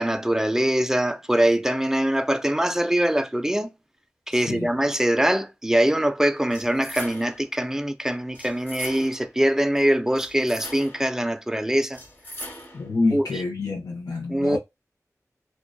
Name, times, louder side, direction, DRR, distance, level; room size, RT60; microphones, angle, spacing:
voice 1, 0.0-3.7 4.3-12.0 13.1-13.3 14.3-14.6, right 1 dB, 10° right, 0.4 m, -23 dB
sound 1, 6.5-7.5 8.3-9.3 10.2-11.1 11.9-12.9, equal, 40° left, 1.2 m, -39 dB
voice 2, 12.7-14.6, left 3 dB, 85° left, 0.6 m, -27 dB
2.5 x 2.2 x 2.2 m
cardioid pair, 40°, 6 cm